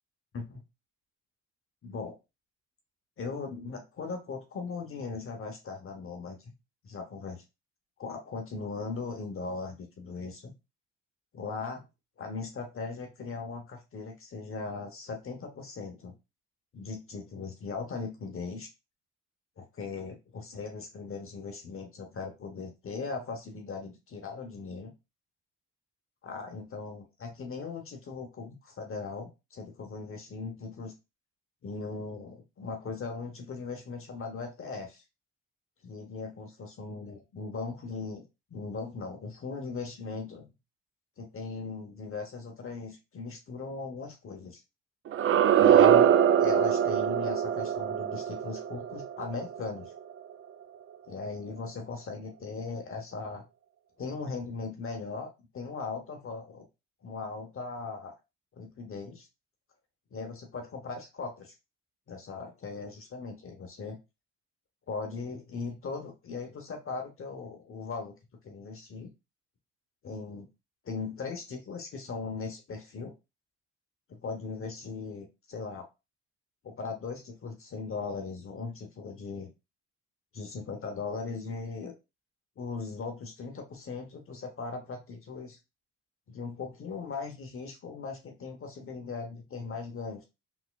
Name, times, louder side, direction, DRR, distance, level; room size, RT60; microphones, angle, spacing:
voice 1, 1.8-2.1 3.2-6.5 6.8-7.4 8.0-10.5 11.3-11.8 12.2-16.1 16.7-18.7 19.6-24.9 26.2-30.9 31.6-35.0 35.8-40.4 41.2-44.6 45.6-46.1 46.4-49.9 51.1-53.4 54.0-56.6 57.0-58.1 58.5-59.3 60.1-61.5 62.1-64.0 64.9-68.1 68.4-69.1 70.0-70.5 70.8-73.1 74.1-75.9 76.6-79.5 80.3-81.9 82.6-85.6 86.3-90.3, left 4 dB, 45° left, 4 dB, 0.9 m, -39 dB
sound 1, 45.1-50.0, right 9 dB, 45° right, 0.4 m, -23 dB
4.1 x 3.4 x 2.3 m, 0.25 s
cardioid pair, 90°, 30 cm